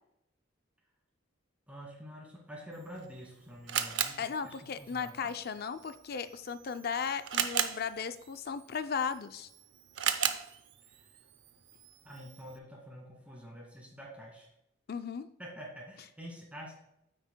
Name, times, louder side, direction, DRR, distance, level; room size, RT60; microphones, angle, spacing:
voice 1, 1.7-5.3 10.9-11.1 12.0-14.5 15.4-16.7, equal, 5° right, -2 dB, 2.1 m, -47 dB
Camera, 2.7-12.6, right 9 dB, 60° right, 0.6 m, -38 dB
voice 2, 4.2-9.5 14.9-15.3, left 6 dB, 50° left, 11 dB, 0.4 m, -36 dB
9.3 x 8.1 x 2.2 m, 0.80 s
head